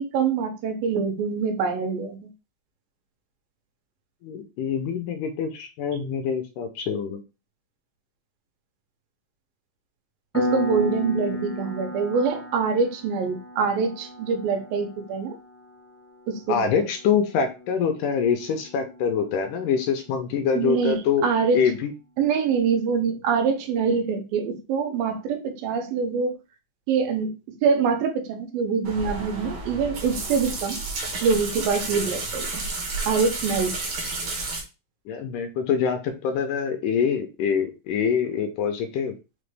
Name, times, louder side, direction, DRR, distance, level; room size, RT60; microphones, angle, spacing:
voice 1, 0.0-2.3 10.4-15.3 16.3-16.6 20.6-21.0 21.2-21.6 22.2-26.3 26.9-27.3 27.6-30.8 31.2-32.5 33.1-33.8, right 5 dB, 85° right, 2.5 m, -24 dB
voice 2, 4.2-7.2 16.5-21.9 35.1-39.1, left 7 dB, 80° left, 2.0 m, -25 dB
Piano, 10.3-20.7, equal, 15° left, 0.5 m, -35 dB
sound 1, 28.8-34.6, right 3 dB, 70° right, 1.3 m, -31 dB
5.7 x 2.2 x 3.2 m
omnidirectional pair, 4.0 m